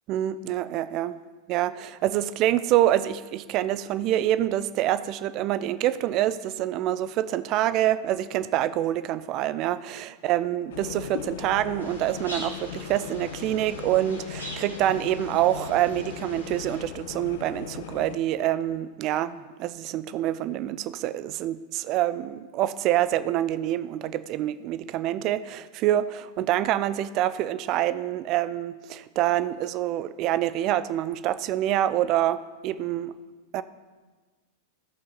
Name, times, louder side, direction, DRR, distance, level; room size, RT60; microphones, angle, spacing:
voice 1, 0.1-1.2 1.5-33.1 33.5-33.6, right 13 dB, 40° right, 15 dB, 0.4 m, -26 dB
sound 1, 10.7-18.2, left 9 dB, 55° left, 0.4 m, -39 dB
sound 2, 11.8-16.8, equal, 85° left, 1.8 m, -43 dB
15.5 x 5.6 x 4.0 m, 1.3 s
figure-of-eight pair, 90°, 0 cm